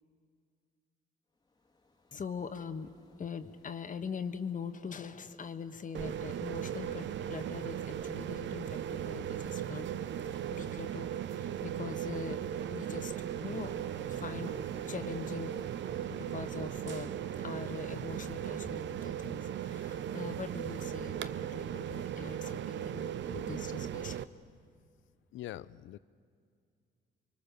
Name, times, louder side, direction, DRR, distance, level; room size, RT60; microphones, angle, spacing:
Ocean, 1.4-20.5, left 3 dB, 20° left, 1.9 m, -61 dB
voice 1, 2.1-2.9 3.2-9.9 10.2-11.1 11.3-12.4 12.7-13.1 13.4-13.8 14.1-14.6 14.8-15.5 16.1-24.2, left 6 dB, 40° left, 9 dB, 1.3 m, -42 dB
sound 1, 5.9-24.2, right 10 dB, 65° right, 0.8 m, -37 dB
voice 2, 25.3-26.0, left 13 dB, 75° left, 18 dB, 0.6 m, -43 dB
30.0 x 24.0 x 6.9 m, 2.2 s
cardioid pair, 90°, 20 cm